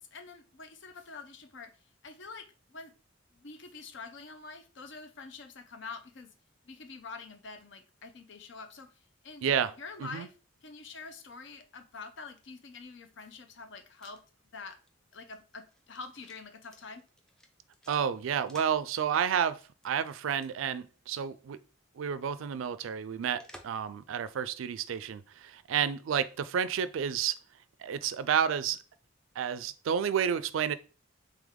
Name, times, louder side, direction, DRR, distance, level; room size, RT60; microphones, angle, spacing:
voice 1, 0.0-1.7 2.0-2.9 3.3-6.3 6.6-8.9 9.2-9.5 9.8-10.3 10.6-14.2 14.5-14.8 15.1-17.1, left 4 dB, 60° left, 0.6 m, -46 dB
voice 2, 9.4-9.7 10.0-10.3 17.9-21.6 22.0-27.3 27.8-28.8 29.4-30.7, right 8 dB, 75° right, 0.3 m, -30 dB
sound 1, 13.6-18.8 19.1-19.9 20.3-20.5 20.8-20.9 23.4-23.9 24.3-24.4, equal, 5° left, 0.4 m, -56 dB
3.5 x 3.2 x 3.6 m
head